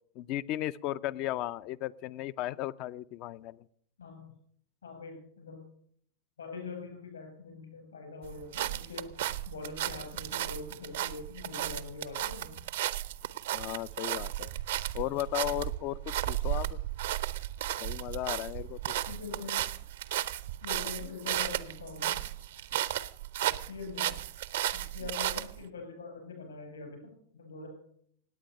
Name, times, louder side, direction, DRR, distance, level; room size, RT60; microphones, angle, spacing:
voice 1, 0.2-3.6 13.5-14.5 14.9-16.8 17.8-18.9, left 14 dB, 40° left, 17 dB, 0.5 m, -35 dB
voice 2, 4.0-4.3 4.8-5.6 6.4-9.1 9.5-12.5 19.1-19.6 20.6-22.2 23.4-24.2 24.7-27.7, left 4 dB, 70° left, 4 dB, 6.4 m, -43 dB
sound 1, 8.2-25.6, right 13 dB, 60° right, 0.6 m, -34 dB
18.0 x 9.1 x 6.5 m, 0.64 s
figure-of-eight pair, 90°, 0 cm